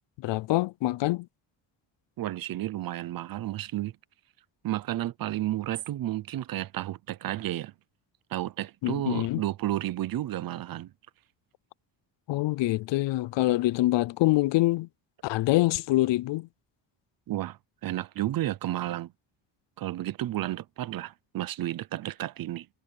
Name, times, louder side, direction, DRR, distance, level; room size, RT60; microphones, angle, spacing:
voice 1, 0.2-1.3 8.8-9.4 12.3-14.9 15.2-16.5, left 18 dB, 65° left, 0.6 m, -25 dB
voice 2, 2.2-3.9 4.6-7.7 8.3-10.9 17.3-19.1 19.8-22.7, right 14 dB, 50° right, 0.6 m, -32 dB
cardioid pair, 150°, 47 cm